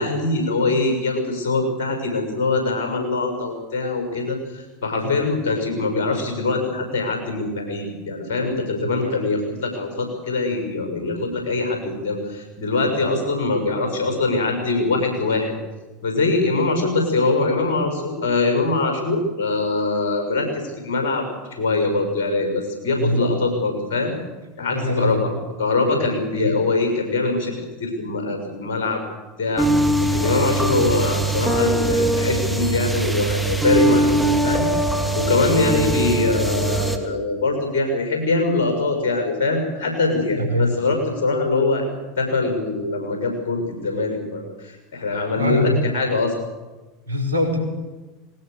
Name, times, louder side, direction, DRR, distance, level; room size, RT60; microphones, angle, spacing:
voice 1, 0.0-15.5 16.0-21.2 21.6-24.1 24.6-25.3 25.6-27.5 27.8-29.0 29.4-29.7 30.1-34.7 35.1-41.8 42.2-46.3, left 3 dB, 65° left, 4 dB, 6.6 m, -23 dB
voice 2, 8.8-9.2 22.9-23.4 24.7-25.3 26.4-26.5 40.3-40.8 45.3-45.9 47.1-47.6, left 1 dB, 75° right, 3 dB, 5.0 m, -23 dB
sound 1, 29.6-37.0, right 1 dB, ahead, 2.8 m, -21 dB
20.5 x 19.0 x 6.8 m, 1.2 s
figure-of-eight pair, 80°, 0 cm